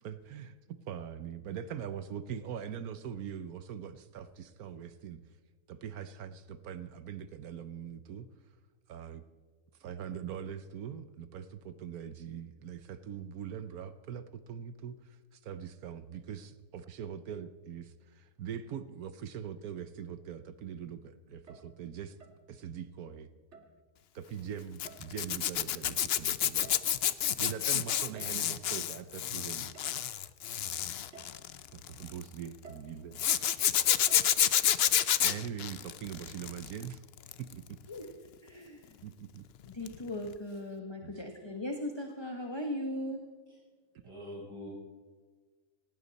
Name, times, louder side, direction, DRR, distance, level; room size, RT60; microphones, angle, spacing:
voice 1, 0.0-5.2 5.7-8.3 8.9-9.2 9.8-22.2 22.5-23.3 24.1-26.7 27.4-29.7 31.7-33.3 35.2-37.0 37.4-37.8 39.0-39.4 41.0-41.1 43.9-44.0, right 8 dB, 75° right, 12 dB, 1.2 m, -42 dB
sound 1, 21.3-21.8 22.2-22.5 23.5-23.8 24.8-25.3 26.4-27.1 28.1-28.5 29.7-29.9 30.4-30.5 31.1-31.5 32.6-33.0 34.1-34.3, right 4 dB, 45° right, 2.0 m, -53 dB
Zipper (clothing), 24.8-32.2 33.2-36.8 37.2-37.5 39.9-40.0 40.3-40.4, left 10 dB, 60° left, 0.6 m, -29 dB
voice 2, 38.4-39.0 39.7-43.2, left 1 dB, 20° left, 3 dB, 1.2 m, -38 dB
voice 3, 44.0-44.7, left 1 dB, 20° right, -8 dB, 6.7 m, -44 dB
18.5 x 17.5 x 4.1 m, 1.4 s
omnidirectional pair, 1.6 m